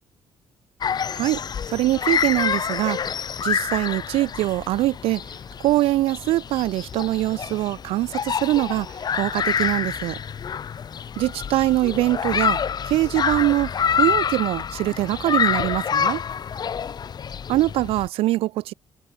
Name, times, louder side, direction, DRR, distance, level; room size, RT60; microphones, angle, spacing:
Smalltown Playground Summer Afternoon, 0.8-18.1, left 7 dB, 45° left, 0.8 m, -27 dB
voice 1, 1.7-3.0 3.4-5.2 5.6-8.9 9.1-10.2 11.2-12.6 12.9-16.2 17.5-18.7, right 16 dB, 80° right, 0.4 m, -23 dB
supercardioid pair, 70°, 9 cm